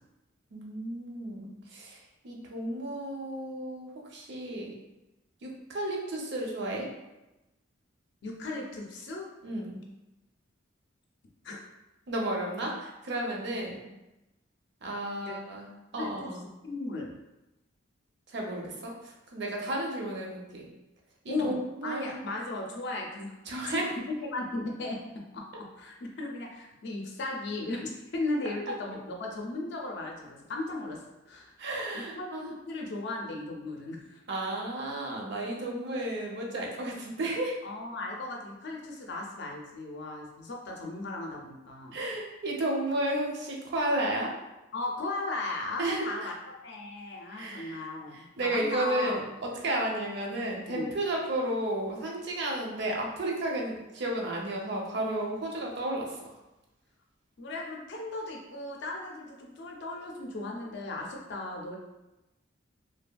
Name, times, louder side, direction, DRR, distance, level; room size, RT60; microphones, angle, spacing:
voice 1, 0.5-2.0 2.2-4.7 5.4-6.9 9.4-9.8 12.1-13.8 14.8-15.7 15.9-16.4 18.3-20.7 21.2-22.2 23.5-23.9 31.6-32.5 34.3-37.6 41.9-44.3 45.8-46.3 47.3-47.8 48.4-56.2, right 1 dB, 60° right, -1 dB, 0.6 m, -33 dB
voice 2, 8.2-9.3 11.4-11.6 15.3-15.4 16.0-16.3 16.6-17.2 21.3-23.3 23.7-23.8 24.3-25.0 25.3-31.5 31.9-34.2 37.6-42.0 44.7-46.3 46.6-49.2 50.7-50.9 57.4-61.8, left 2 dB, 60° left, 0 dB, 0.5 m, -36 dB
2.7 x 2.5 x 2.2 m, 0.99 s
head